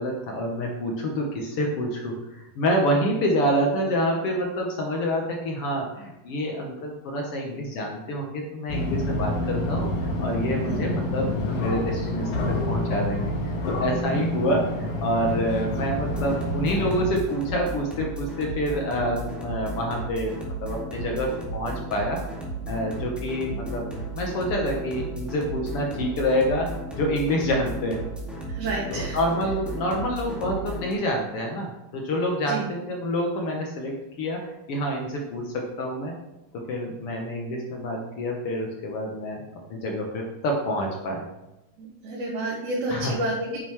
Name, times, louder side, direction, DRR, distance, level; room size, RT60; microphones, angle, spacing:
voice 1, 0.0-20.3 20.6-22.2 22.7-23.9 24.1-28.0 28.9-34.4 34.7-36.1 36.5-39.4 39.7-41.2 42.9-43.1, equal, 60° left, 1 dB, 1.7 m, -27 dB
sound 1, 8.7-17.1, left 1 dB, 85° left, 2.9 m, -28 dB
voice 2, 10.6-10.9 28.5-29.2 32.5-32.7 41.8-43.6, right 2 dB, 85° right, -5 dB, 2.9 m, -30 dB
sound 2, 16.0-30.9, right 2 dB, ahead, 1.2 m, -34 dB
9.1 x 6.7 x 3.1 m, 0.95 s
omnidirectional pair, 3.4 m